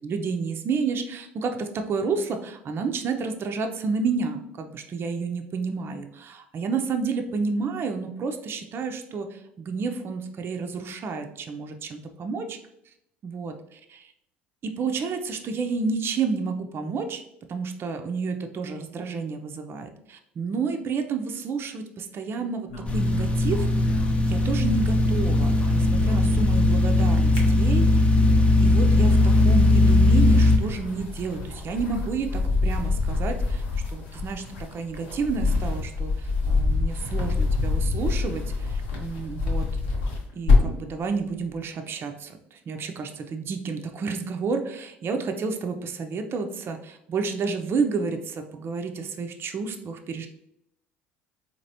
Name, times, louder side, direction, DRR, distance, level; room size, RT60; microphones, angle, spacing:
voice 1, 0.0-12.6 13.2-14.1 14.6-17.2 17.5-23.9 24.2-28.0 28.6-29.2 29.4-33.6 33.9-34.4 34.7-39.7 40.3-50.3, right 4 dB, 40° right, 5 dB, 0.5 m, -30 dB
sound 1, 22.7-24.9 25.1-26.7 27.1-28.1 28.7-40.9, left 3 dB, 70° left, 0.9 m, -27 dB
sound 2, 22.9-30.6, left 2 dB, 20° left, 0.6 m, -19 dB
4.0 x 2.9 x 2.7 m, 0.77 s
hypercardioid pair, 65°, 6 cm